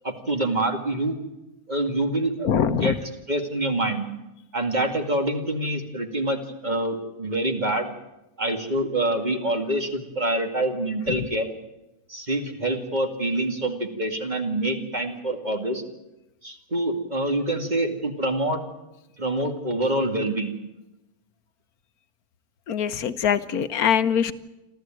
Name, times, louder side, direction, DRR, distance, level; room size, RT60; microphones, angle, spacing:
voice 1, 0.0-1.2 1.7-3.0 3.3-4.1 4.5-7.9 8.4-11.5 12.1-15.8 16.4-18.6 19.2-20.5, right 1 dB, 30° right, 4 dB, 2.4 m, -26 dB
voice 2, 2.4-3.0 11.1-11.2 22.7-24.3, left 8 dB, 85° left, 12 dB, 1.4 m, -23 dB
28.0 x 13.5 x 9.1 m, 0.97 s
omnidirectional pair, 1.5 m